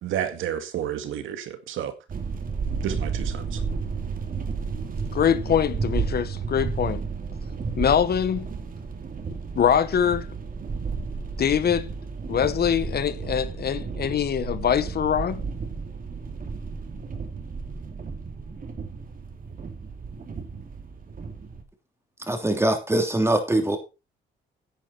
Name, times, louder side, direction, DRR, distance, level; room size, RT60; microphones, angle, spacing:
voice 1, 0.0-1.9 2.8-3.6, right 10 dB, 85° right, 1.9 m, -31 dB
sound 1, 2.1-21.6, right 5 dB, 45° right, 2.5 m, -32 dB
voice 2, 5.1-7.0 7.8-8.5 9.5-10.3 11.4-11.9 12.3-15.4, left 8 dB, 55° left, 1.0 m, -23 dB
voice 3, 22.3-23.8, right 1 dB, 15° right, 3.2 m, -22 dB
10.0 x 9.0 x 4.3 m
cardioid pair, 90°, 20 cm